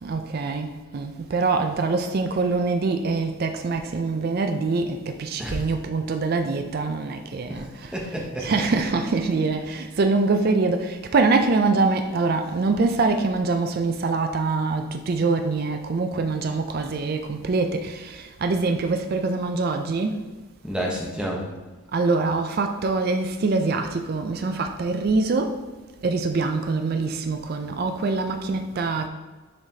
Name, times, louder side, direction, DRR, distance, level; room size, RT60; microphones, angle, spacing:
voice 1, 0.0-8.0 8.4-20.3 21.9-25.7 26.0-29.1, right 3 dB, 45° right, 0.4 m, -24 dB
voice 2, 5.4-5.7 7.5-8.5 20.6-21.5, equal, 5° right, 0.8 m, -30 dB
7.2 x 4.9 x 2.7 m
head